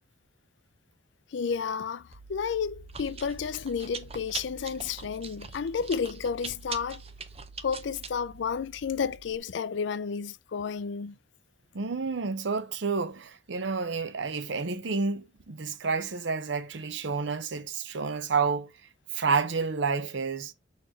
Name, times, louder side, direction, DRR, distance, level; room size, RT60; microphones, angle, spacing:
voice 1, 1.3-7.0 7.6-11.2, left 6 dB, 65° left, 0.4 m, -31 dB
Chewing mastication, 2.1-9.4, right 5 dB, 30° right, 0.8 m, -43 dB
voice 2, 11.7-18.7 19.1-20.5, right 4 dB, 70° right, 0.7 m, -30 dB
6.5 x 3.2 x 4.5 m
head